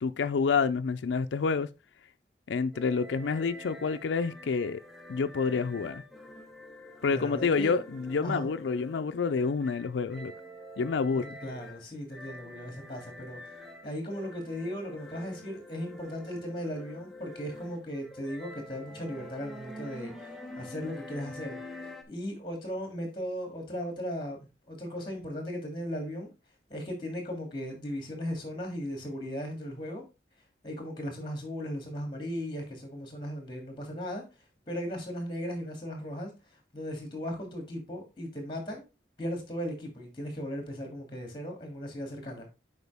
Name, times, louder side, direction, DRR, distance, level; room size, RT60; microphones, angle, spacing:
voice 1, 0.0-1.7 2.5-4.8 5.1-6.0 7.0-10.3 10.8-11.4, left 5 dB, 85° left, 0.4 m, -28 dB
sound 1, 2.7-22.0, left 1 dB, ahead, 0.8 m, -46 dB
voice 2, 7.1-7.7 8.2-8.5 11.1-13.5 13.8-21.6 22.1-24.4 24.7-26.3 26.7-30.0 30.6-34.2 34.7-38.9 39.2-42.5, equal, 25° left, 2.7 m, -37 dB
8.0 x 5.1 x 3.5 m
head